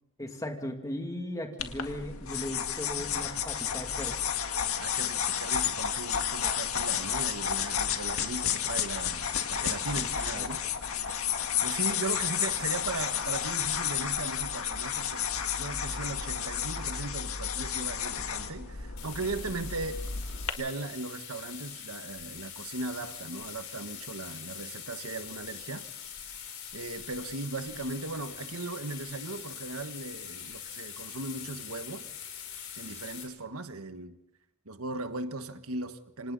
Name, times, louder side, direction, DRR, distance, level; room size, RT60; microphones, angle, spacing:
voice 1, 0.2-4.2 10.0-10.1 10.4-10.5, left 1 dB, 15° left, 2.6 m, -37 dB
sound 1, 1.6-20.5, left 8 dB, 85° left, 1.9 m, -31 dB
voice 2, 4.8-10.6 10.9-11.2 11.6-15.3 15.6-20.0 20.6-25.8 26.7-32.0 32.5-34.2 34.6-36.3, right 3 dB, 90° right, 1.4 m, -38 dB
sound 2, 19.0-33.2, left 8 dB, 65° left, 6.8 m, -43 dB
28.0 x 26.0 x 4.1 m
head